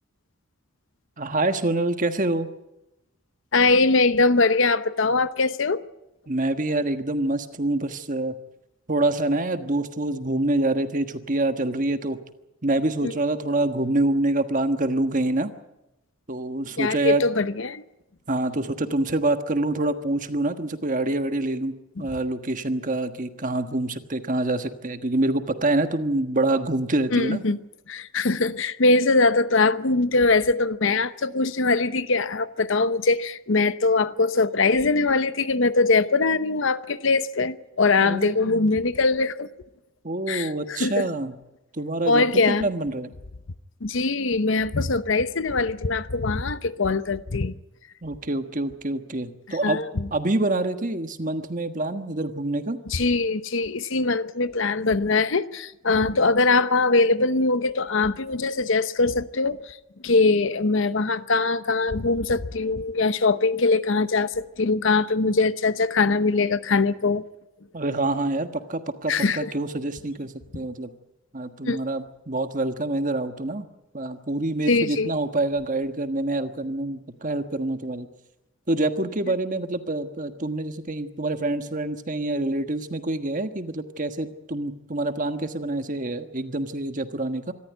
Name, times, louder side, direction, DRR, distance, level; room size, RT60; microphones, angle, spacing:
voice 1, 1.2-2.5 6.3-8.3 8.9-12.2 12.6-15.5 16.3-17.2 18.3-27.4 38.0-38.7 40.0-41.3 41.7-43.1 48.0-49.8 50.1-52.8 67.7-70.9 71.3-73.7 73.9-78.1 78.7-87.5, right 2 dB, 40° right, 1.4 m, -26 dB
voice 2, 3.5-5.8 13.0-13.1 16.8-17.8 22.0-22.1 27.1-27.6 27.9-39.5 40.3-41.1 42.1-42.7 43.8-47.5 49.6-50.1 52.9-59.8 60.0-67.2 69.1-69.5 71.6-71.8 74.7-75.1, left 3 dB, 60° left, 0.8 m, -22 dB
25.5 x 13.5 x 9.1 m
head